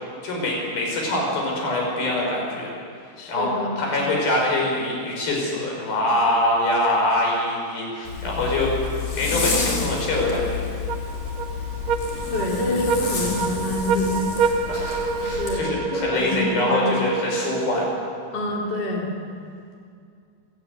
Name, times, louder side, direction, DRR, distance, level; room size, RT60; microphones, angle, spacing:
voice 1, 0.2-2.7 3.3-3.5 3.8-8.8 9.1-10.6 14.6-17.8, left 1 dB, 70° left, -1 dB, 7.8 m, -24 dB
voice 2, 3.2-4.0 9.3-9.4 12.3-14.9 15.2-17.0 18.3-19.1, left 2 dB, 30° left, -2 dB, 3.2 m, -27 dB
Zipper (clothing), 8.0-15.6, left 5 dB, 55° left, 5.0 m, -30 dB
sound 1, 10.9-18.4, right 5 dB, 75° right, 1.6 m, -28 dB
27.0 x 17.0 x 8.3 m, 2.3 s
omnidirectional pair, 4.4 m